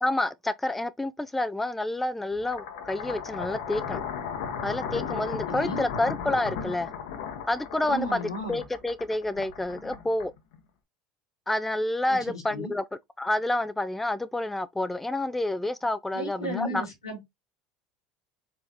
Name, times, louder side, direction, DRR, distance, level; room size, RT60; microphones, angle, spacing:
voice 1, 0.0-4.0 4.6-6.9 7.5-10.3 11.5-12.8 13.2-16.9, left 1 dB, 5° left, 0.3 m, -29 dB
sound 1, 2.3-10.6, left 7 dB, 65° left, 0.9 m, -35 dB
voice 2, 5.5-5.9 7.9-8.6 12.1-12.7 16.1-17.3, equal, 90° left, 1.8 m, -34 dB
4.3 x 3.1 x 2.8 m
hypercardioid pair, 70°, 2 cm